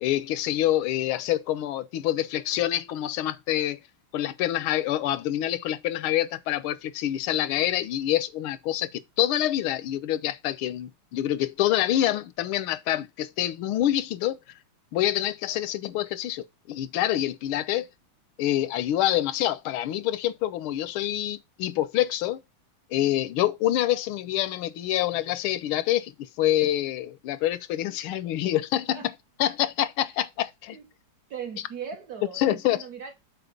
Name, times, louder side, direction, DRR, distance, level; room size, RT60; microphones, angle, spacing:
voice 1, 0.0-3.8 4.1-14.4 14.9-17.9 18.4-22.4 22.9-29.1 29.4-30.8 32.4-32.8, left 13 dB, 80° left, 1.5 m, -26 dB
voice 2, 31.3-33.1, right 7 dB, 55° right, 1.3 m, -38 dB
6.9 x 4.2 x 5.2 m
omnidirectional pair, 2.4 m